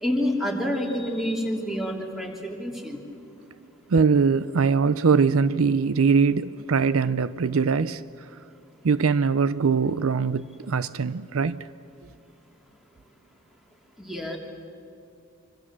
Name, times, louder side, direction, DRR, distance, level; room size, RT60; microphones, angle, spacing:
voice 1, 0.0-3.0 14.0-14.4, equal, ahead, 3.1 m, -28 dB
voice 2, 3.9-8.3 8.8-11.7, right 5 dB, 70° right, 0.5 m, -22 dB
26.0 x 25.0 x 7.5 m
head